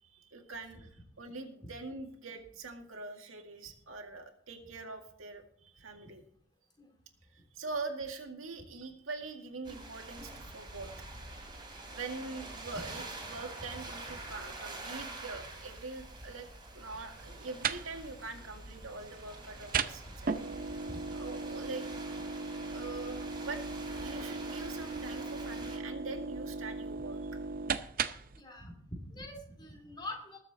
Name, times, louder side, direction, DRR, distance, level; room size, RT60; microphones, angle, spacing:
voice 1, 0.0-6.2 7.3-10.9 11.9-16.5 16.7-20.3 21.1-21.8 22.7-23.6 23.9-27.3, right 3 dB, 90° right, 3 dB, 2.0 m, -43 dB
sound 1, 9.6-25.8, right 2 dB, 20° right, 3.4 m, -46 dB
sound 2, 17.2-28.4, right 4 dB, 45° right, 0.6 m, -38 dB
voice 2, 28.4-30.4, left 1 dB, 20° left, 2 dB, 2.5 m, -44 dB
20.0 x 7.3 x 4.1 m, 0.66 s
head